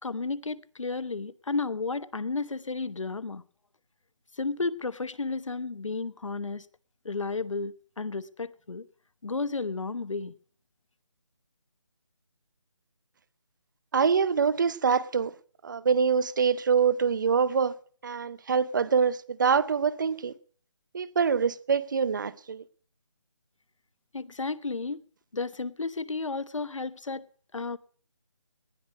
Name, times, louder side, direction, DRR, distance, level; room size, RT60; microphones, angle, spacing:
voice 1, 0.0-3.4 4.3-6.7 7.0-8.9 9.2-10.3 24.1-25.0 25.3-27.2 27.5-27.8, left 3 dB, 90° left, 1.0 m, -32 dB
voice 2, 13.9-15.3 15.6-17.7 18.0-20.3 20.9-22.6, right 6 dB, 40° right, 0.7 m, -25 dB
19.0 x 11.0 x 5.2 m
figure-of-eight pair, 165°, 16 cm